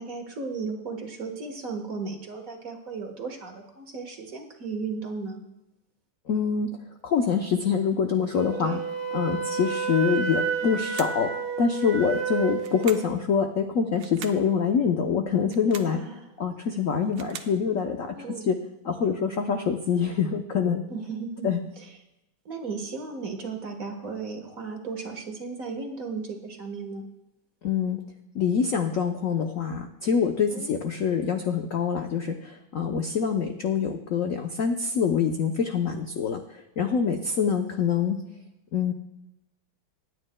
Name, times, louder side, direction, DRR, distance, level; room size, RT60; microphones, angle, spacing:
voice 1, 0.0-5.4 8.6-8.8 15.9-16.2 18.1-18.5 20.9-21.5 21.8-21.9 22.4-27.0 30.5-30.7, right 4 dB, 45° right, 3 dB, 1.5 m, -35 dB
voice 2, 6.3-6.8 7.0-8.8 9.1-16.0 16.4-18.6 18.8-20.9 21.4-21.6 27.6-28.0 28.3-38.2 38.7-38.9, left 6 dB, 70° left, 4 dB, 0.8 m, -25 dB
Wind instrument woodwind instrument, 8.4-13.1, right 6 dB, 85° right, 2.0 m, -30 dB
sound 1, 10.8-11.3 12.6-13.2 14.0-14.5 15.4-16.0 16.9-17.6, right 8 dB, 70° right, 1.4 m, -42 dB
26.0 x 9.6 x 2.2 m, 0.92 s
omnidirectional pair, 2.3 m